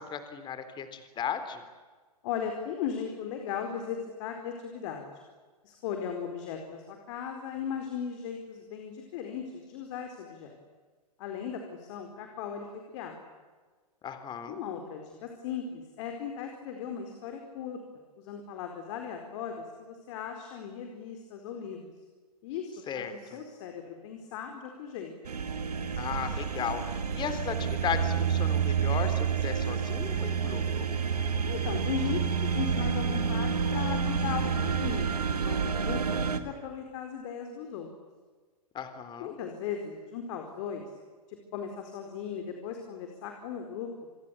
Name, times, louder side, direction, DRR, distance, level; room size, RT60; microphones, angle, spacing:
voice 1, 0.0-1.6 14.0-14.6 22.9-23.2 26.0-30.9 38.7-39.4, left 7 dB, 25° left, 10 dB, 3.7 m, -35 dB
voice 2, 2.2-5.1 5.6-10.6 11.2-12.7 12.9-13.2 14.5-17.8 18.2-21.9 22.4-25.1 31.5-37.9 39.2-40.8 41.3-43.9, left 7 dB, 50° left, 4 dB, 4.5 m, -37 dB
sound 1, 25.2-36.4, right 6 dB, 90° right, 2.3 m, -29 dB
28.5 x 22.0 x 8.4 m, 1.4 s
hypercardioid pair, 120°, 19 cm